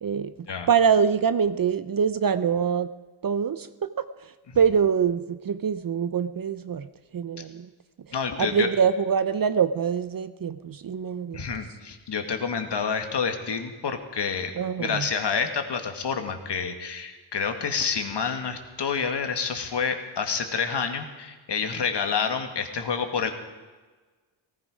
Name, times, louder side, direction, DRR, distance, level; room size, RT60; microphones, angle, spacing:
voice 1, 0.0-0.3 0.7-2.9 3.2-3.7 4.0-7.7 8.4-11.5 14.6-15.1, right 7 dB, 45° right, 13 dB, 0.7 m, -24 dB
voice 2, 8.1-8.7 11.3-14.5 14.8-23.3, left 6 dB, 60° left, 6 dB, 2.0 m, -28 dB
18.0 x 15.5 x 5.0 m, 1.3 s
wide cardioid pair, 95°, 47 cm